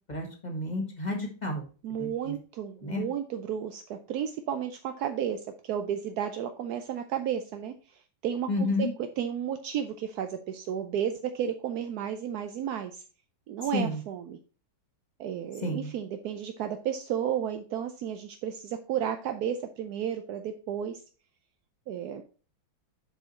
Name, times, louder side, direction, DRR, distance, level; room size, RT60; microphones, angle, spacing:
voice 1, 0.1-1.6 2.0-2.3 2.8-3.0 8.5-8.9 13.7-14.0 15.6-15.9, left 2 dB, 20° left, 3 dB, 1.6 m, -31 dB
voice 2, 1.8-7.7 8.2-13.0 13.5-14.4 15.2-21.0 21.9-22.2, right 9 dB, 70° right, 7 dB, 0.9 m, -33 dB
8.0 x 4.7 x 4.3 m, 0.37 s
omnidirectional pair, 2.2 m